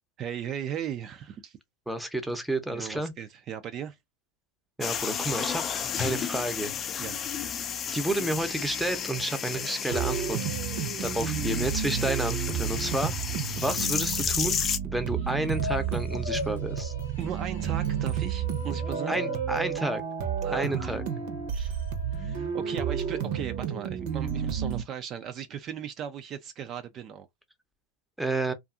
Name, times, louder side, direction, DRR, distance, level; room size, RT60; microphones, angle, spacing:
voice 1, 0.2-1.6 2.7-4.0 7.0-7.2 13.7-13.9 17.2-19.2 20.4-21.0 21.5-21.9 22.1-27.3, right 9 dB, 40° right, 0.4 m, -37 dB
voice 2, 1.9-3.1 4.8-5.6 6.0-6.7 7.9-10.4 11.0-13.1 13.6-16.9 19.1-20.0 20.5-21.0 28.2-28.5, right 1 dB, 5° right, 0.7 m, -30 dB
sound 1, 4.8-14.8, left 7 dB, 35° left, 0.4 m, -32 dB
sound 2, 9.9-24.8, right 8 dB, 65° right, 0.8 m, -31 dB
sound 3, 15.1-23.6, left 5 dB, 85° left, 0.8 m, -42 dB
2.6 x 2.4 x 2.4 m
hypercardioid pair, 100°, 0 cm